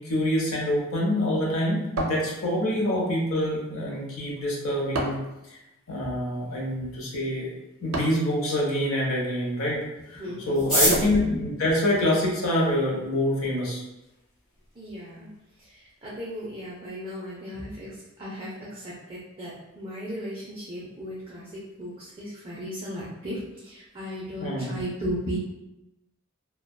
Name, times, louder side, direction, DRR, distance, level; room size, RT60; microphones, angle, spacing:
voice 1, 0.0-5.2 5.5-5.6 5.9-7.5 7.8-9.8 10.1-13.8 24.4-24.7, left 1 dB, 85° left, -3 dB, 0.6 m, -26 dB
sound 1, 2.0-2.8 4.9-5.4 7.9-8.3 10.9-11.3, right 1 dB, 90° right, 0.5 m, -31 dB
voice 2, 10.2-10.9 14.8-15.3 15.6-25.4, equal, 25° right, -8 dB, 0.5 m, -36 dB
sound 2, 10.5-12.8 13.6-13.7 13.9-14.0 14.3-14.7 15.1-15.2 15.3-15.8 16.1-16.3 16.6-16.9, equal, ahead, 1.4 m, -27 dB
2.6 x 2.1 x 2.2 m, 0.95 s
head